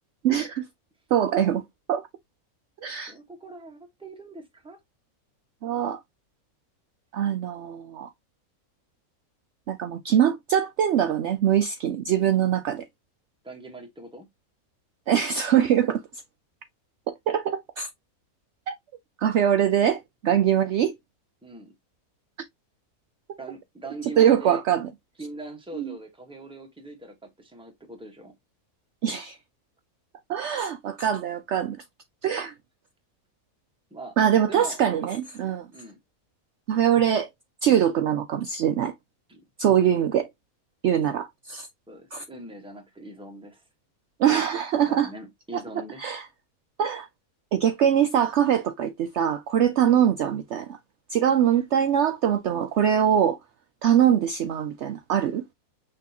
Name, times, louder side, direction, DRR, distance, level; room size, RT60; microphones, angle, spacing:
voice 1, 0.2-0.6 1.1-1.6 1.9-2.0 2.8-3.1 5.6-6.0 7.1-8.1 9.7-12.9 15.1-16.0 17.1-17.9 18.7-18.8 19.2-20.9 24.2-24.9 25.7-25.9 29.0-29.4 30.3-31.8 32.2-32.5 34.2-35.7 36.7-37.3 37.6-38.9 39.6-40.3 40.8-41.7 42.1-42.2 44.2-45.1 45.5-46.3 46.8-47.1 47.5-50.8 51.1-53.4 53.8-55.4, right 9 dB, 65° right, 0.7 m, -23 dB
voice 2, 3.1-4.8 13.4-14.3 21.4-21.7 23.4-24.6 25.2-28.3 33.9-34.1 34.5-34.8 35.7-36.0 39.3-39.4 41.9-43.6 44.9-46.1 49.8-50.1 54.1-54.2, right 2 dB, 5° right, 1.1 m, -42 dB
6.1 x 3.1 x 2.7 m
omnidirectional pair, 1.5 m